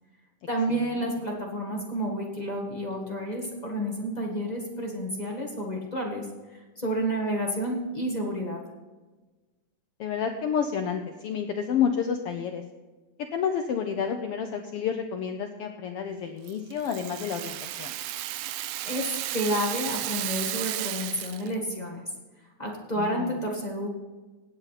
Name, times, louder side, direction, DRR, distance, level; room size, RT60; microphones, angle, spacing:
voice 1, 0.5-8.6 18.8-22.0 22.6-23.9, equal, 25° left, -1 dB, 1.0 m, -30 dB
voice 2, 10.0-12.6 13.3-17.9 23.0-23.3, left 7 dB, 80° left, 6 dB, 1.3 m, -30 dB
Rattle (instrument), 16.5-21.6, right 14 dB, 85° right, 2.0 m, -33 dB
18.0 x 8.2 x 4.1 m, 1.2 s
omnidirectional pair, 3.5 m